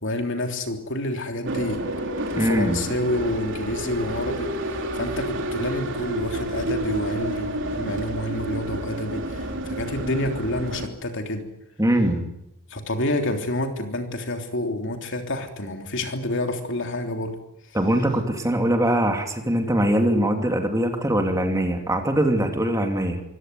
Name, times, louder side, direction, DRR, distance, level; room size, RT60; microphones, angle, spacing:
voice 1, 0.0-1.8 2.3-4.5 4.9-11.5 12.7-17.4, left 1 dB, 60° left, 5 dB, 3.3 m, -28 dB
sound 1, 1.5-10.9, right 1 dB, 60° right, 3.1 m, -30 dB
voice 2, 2.4-2.8 11.8-12.3 17.7-23.2, right 1 dB, 15° right, 5 dB, 2.8 m, -22 dB
25.0 x 16.5 x 9.5 m, 0.82 s
head